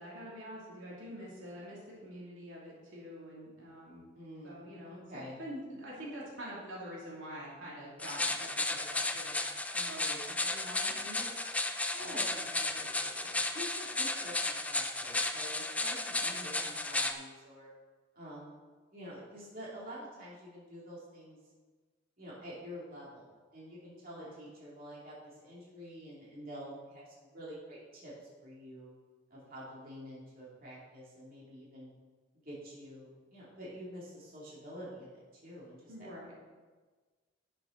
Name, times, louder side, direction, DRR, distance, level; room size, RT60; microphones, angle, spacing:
voice 1, 0.0-4.1 4.4-5.0 5.4-9.4 9.7-11.4 11.9-13.4 16.1-16.6 24.1-24.3 35.9-36.3, equal, 75° right, -5 dB, 2.7 m, -46 dB
voice 2, 4.1-5.4 11.9-12.3 13.5-17.7 18.1-18.6 18.9-21.4 22.2-28.1 28.4-28.9 29.3-31.9 32.4-35.1 35.4-36.1, equal, 45° right, -6 dB, 2.8 m, -48 dB
sound 1, 8.0-17.1, left 2 dB, 5° left, 0.4 m, -34 dB
11.0 x 7.5 x 3.9 m, 1.4 s
head